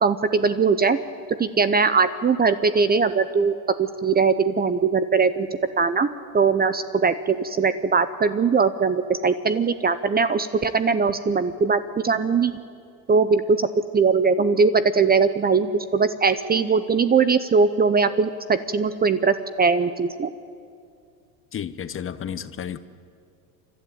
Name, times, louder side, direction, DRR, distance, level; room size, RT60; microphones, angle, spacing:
voice 1, 0.0-1.0 1.4-5.5 5.8-6.1 6.3-12.5 13.1-13.7 13.9-20.3, right 5 dB, 20° right, 14 dB, 0.7 m, -20 dB
voice 2, 21.5-22.8, left 8 dB, 25° left, 13 dB, 0.9 m, -32 dB
29.0 x 12.5 x 8.9 m, 2.4 s
supercardioid pair, 95°, 47 cm